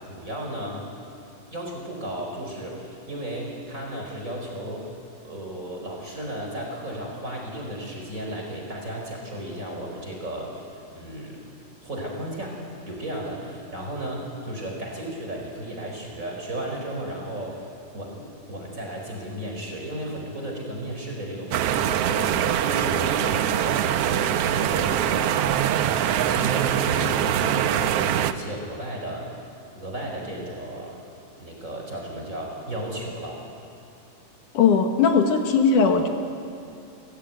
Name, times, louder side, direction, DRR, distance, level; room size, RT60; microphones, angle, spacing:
voice 1, 0.1-0.8 1.5-4.9 5.2-11.4 11.8-12.5 12.8-17.7 17.9-29.3 29.7-30.9 31.4-33.4, right 1 dB, 25° right, 0 dB, 4.9 m, -34 dB
sound 1, 21.5-28.3, right 10 dB, 80° right, 1.3 m, -23 dB
voice 2, 34.5-36.1, left 5 dB, 75° left, 4 dB, 2.9 m, -19 dB
30.0 x 15.5 x 9.4 m, 2.6 s
omnidirectional pair, 3.7 m